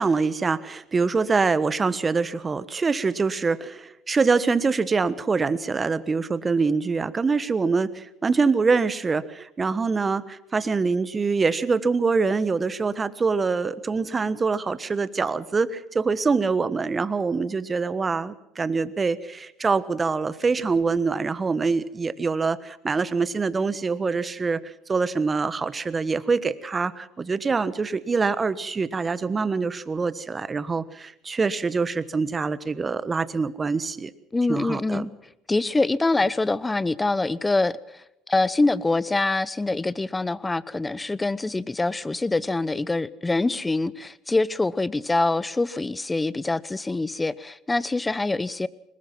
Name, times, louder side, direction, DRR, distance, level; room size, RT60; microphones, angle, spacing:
voice 1, 0.0-34.1 34.5-35.1, right 4 dB, 25° right, 16 dB, 1.3 m, -24 dB
voice 2, 34.3-35.1 35.5-48.7, left 2 dB, 15° left, 20 dB, 0.8 m, -25 dB
22.5 x 20.0 x 6.0 m, 0.86 s
hypercardioid pair, 75°, 0 cm